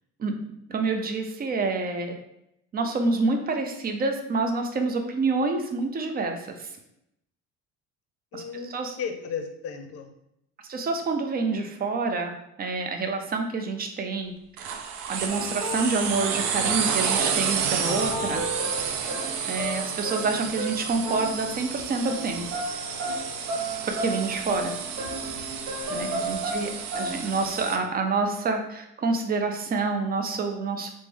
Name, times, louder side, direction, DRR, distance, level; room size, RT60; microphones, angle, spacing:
voice 1, 0.7-2.2 2.7-6.7 8.3-8.4 8.7-9.0 10.7-14.3 14.6-14.7 15.1-18.4 19.4-22.4 23.8-24.7 25.9-26.7 27.0-30.9, right 3 dB, 30° right, 4 dB, 0.5 m, -27 dB
voice 2, 8.3-10.1 26.2-26.5, left 6 dB, 50° left, 6 dB, 0.6 m, -35 dB
sound 1, 14.6-27.8, right 7 dB, 85° right, 0.5 m, -31 dB
sound 2, 15.3-21.8 22.0-22.2 22.5-27.2, right 1 dB, 55° right, 1.1 m, -34 dB
3.2 x 2.1 x 3.3 m, 0.80 s
cardioid pair, 100°, 29 cm